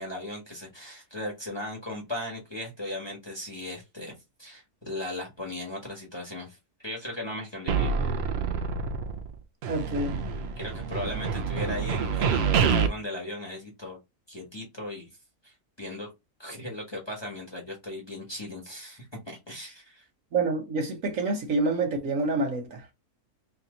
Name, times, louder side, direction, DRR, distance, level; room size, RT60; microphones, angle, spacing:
voice 1, 0.0-4.1 4.4-6.6 6.8-7.9 10.6-14.0 14.3-15.1 15.4-16.1 16.4-20.0, left 1 dB, 20° left, 1.2 m, -37 dB
sound 1, 7.7-9.3 9.6-12.9, right 6 dB, 75° right, 0.5 m, -27 dB
voice 2, 9.7-10.2 20.3-22.9, right 3 dB, 60° right, 1.2 m, -27 dB
3.3 x 2.8 x 3.7 m
omnidirectional pair, 1.6 m